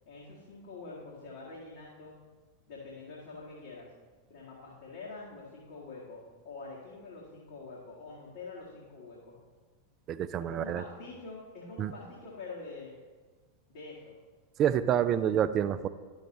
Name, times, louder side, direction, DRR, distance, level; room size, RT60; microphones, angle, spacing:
voice 1, 0.0-2.1 2.7-3.9 4.3-9.3 10.5-12.9 13.7-14.2, left 3 dB, 55° left, -6 dB, 1.6 m, -45 dB
voice 2, 10.1-10.8 11.8-11.9 14.6-15.9, right 9 dB, 30° right, 13 dB, 0.3 m, -27 dB
11.0 x 6.4 x 3.0 m, 1.4 s
figure-of-eight pair, 90°, 0 cm